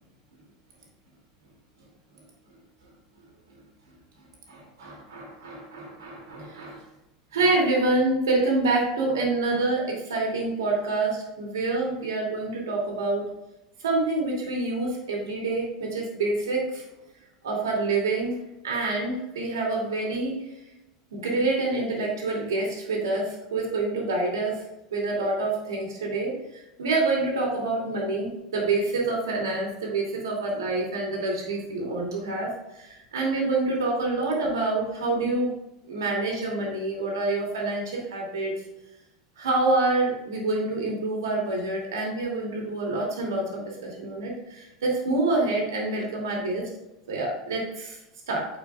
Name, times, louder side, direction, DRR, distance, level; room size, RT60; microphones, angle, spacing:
voice 1, 4.5-6.8 7.3-13.2 13.8-16.8 17.4-18.3 18.6-20.4 21.1-24.6 24.9-35.5 35.9-38.5 39.4-46.7 47.1-48.0 48.3-48.5, right 2 dB, 90° right, -1 dB, 2.3 m, -27 dB
9.2 x 5.1 x 2.3 m, 0.95 s
hypercardioid pair, 100°, 2 cm